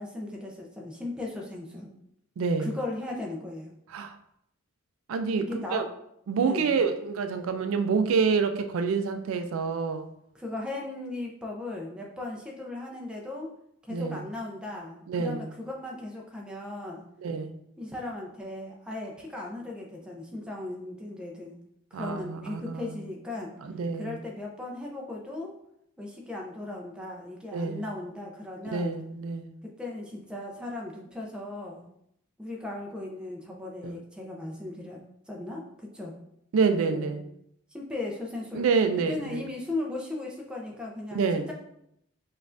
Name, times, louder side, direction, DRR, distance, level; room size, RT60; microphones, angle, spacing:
voice 1, 0.0-1.9 2.6-3.7 5.4-5.9 6.4-6.7 10.3-13.5 13.8-17.0 17.8-21.6 21.9-23.5 24.0-25.5 26.0-28.9 29.8-31.9 32.4-35.0 35.3-36.1 36.8-37.2 37.7-38.7 39.1-41.5, left 2 dB, 5° right, 0.5 m, -37 dB
voice 2, 2.4-2.7 3.9-4.2 5.1-5.9 6.3-10.1 13.9-14.3 15.1-15.5 17.2-17.6 21.9-22.9 23.6-24.2 27.5-27.8 28.7-29.5 33.8-34.0 36.5-37.2 38.5-39.5 41.1-41.5, right 5 dB, 80° right, 0.3 m, -27 dB
5.2 x 2.4 x 2.5 m
head